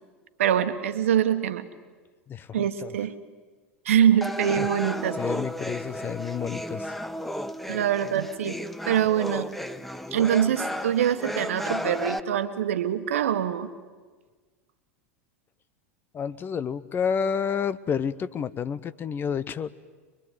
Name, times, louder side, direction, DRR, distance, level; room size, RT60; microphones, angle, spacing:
voice 1, 0.4-1.6 2.5-3.1 3.8-5.2 7.7-8.6 8.9-9.5 10.1-13.7, right 10 dB, 70° right, 10 dB, 1.5 m, -24 dB
voice 2, 2.3-2.9 4.6-4.7 5.1-6.9 16.1-19.7, left 7 dB, 30° left, 16 dB, 0.9 m, -30 dB
sound 1, 4.2-12.2, equal, ahead, 0.9 m, -33 dB
25.0 x 22.0 x 9.4 m, 1.4 s
figure-of-eight pair, 85°, 7 cm